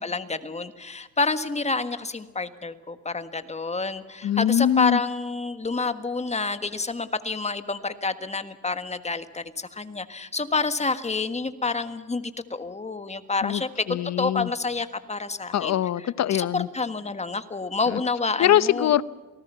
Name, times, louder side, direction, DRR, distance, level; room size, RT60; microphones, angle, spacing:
voice 1, 0.0-15.7 16.3-18.9, left 4 dB, 20° left, 1.6 m, -28 dB
voice 2, 4.2-5.0 13.4-13.6 13.9-14.5 15.5-16.7 17.9-18.0 18.4-19.0, left 11 dB, 60° left, 0.9 m, -22 dB
28.5 x 18.5 x 5.8 m
cardioid pair, 90°, 30 cm